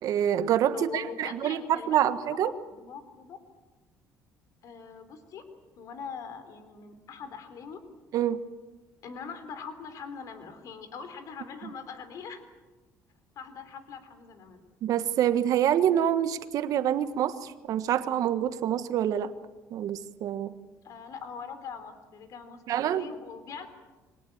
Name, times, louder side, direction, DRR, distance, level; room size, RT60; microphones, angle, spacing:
voice 1, 0.0-2.5 8.1-8.4 14.8-19.3 19.7-20.5 22.7-23.1, right 10 dB, 65° right, 11 dB, 1.5 m, -26 dB
voice 2, 0.7-3.4 4.6-5.4 5.8-7.8 9.0-12.4 13.4-14.6 20.8-23.7, left 6 dB, 60° left, 10 dB, 3.6 m, -42 dB
24.0 x 19.0 x 8.8 m, 1.2 s
cardioid pair, 110°, 7 cm